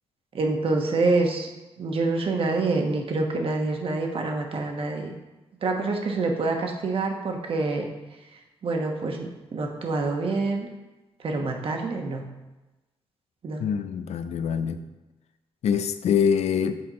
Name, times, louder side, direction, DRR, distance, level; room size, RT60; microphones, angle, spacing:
voice 1, 0.3-1.5 1.8-5.1 5.6-7.9 8.6-10.7 11.2-12.2 13.4-13.6, right 3 dB, 55° right, 2 dB, 1.1 m, -26 dB
voice 2, 13.6-14.8 15.6-16.8, left 7 dB, 85° left, 10 dB, 0.5 m, -24 dB
8.6 x 4.3 x 4.2 m, 1.1 s
cardioid pair, 110°, 11 cm